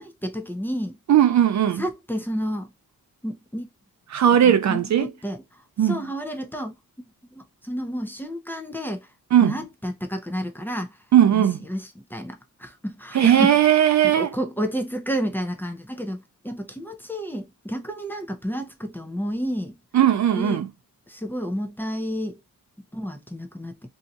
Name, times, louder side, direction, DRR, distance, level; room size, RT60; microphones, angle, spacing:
voice 1, 0.0-1.0 1.8-2.7 3.2-3.7 4.4-5.4 5.8-6.7 7.3-9.1 9.4-10.9 11.3-13.5 14.2-19.7 20.3-20.7 21.1-22.4 22.9-23.8, equal, 5° left, 0.6 m, -30 dB
voice 2, 1.1-1.8 4.1-5.1 5.8-6.0 9.3-9.6 11.1-11.6 13.1-14.3 19.9-20.7, right 10 dB, 55° right, 0.5 m, -18 dB
2.8 x 2.4 x 3.9 m
cardioid pair, 100°, 34 cm